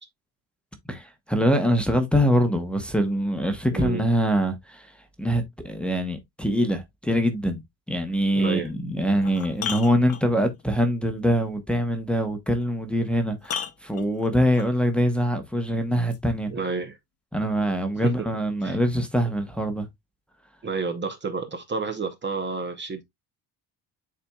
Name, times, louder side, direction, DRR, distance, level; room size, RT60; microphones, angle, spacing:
voice 1, 0.9-4.9 5.2-7.6 7.9-16.5 17.3-19.9, equal, ahead, 0.8 m, -24 dB
voice 2, 3.7-4.0 8.3-8.7 16.5-17.0 18.0-18.1 18.6-18.8 20.6-23.0, right 4 dB, 25° right, 0.7 m, -30 dB
sound 1, 8.5-8.6 9.1-10.6 12.6-12.7 13.4-14.7 16.1-16.2, left 7 dB, 35° left, 0.8 m, -34 dB
10.0 x 4.2 x 2.2 m
cardioid pair, 175°, 43 cm